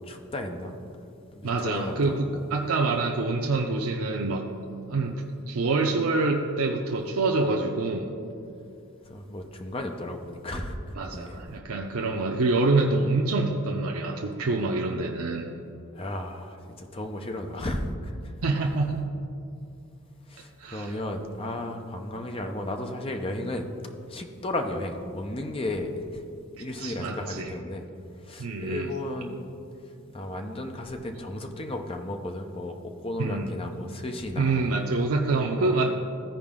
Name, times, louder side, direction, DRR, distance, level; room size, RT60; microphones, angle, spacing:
voice 1, 0.1-0.8 1.3-2.5 9.0-11.4 15.9-18.3 20.3-26.2 26.6-27.8 28.2-29.4 30.1-34.7 35.5-35.7, left 1 dB, 25° left, 4 dB, 0.6 m, -34 dB
voice 2, 1.4-4.5 4.9-8.1 11.0-15.4 18.4-19.1 20.6-20.9 26.8-27.5 28.4-28.9 33.2-33.5 34.4-35.9, right 3 dB, 90° right, 1 dB, 0.6 m, -26 dB
14.5 x 4.9 x 3.6 m, 2.6 s
head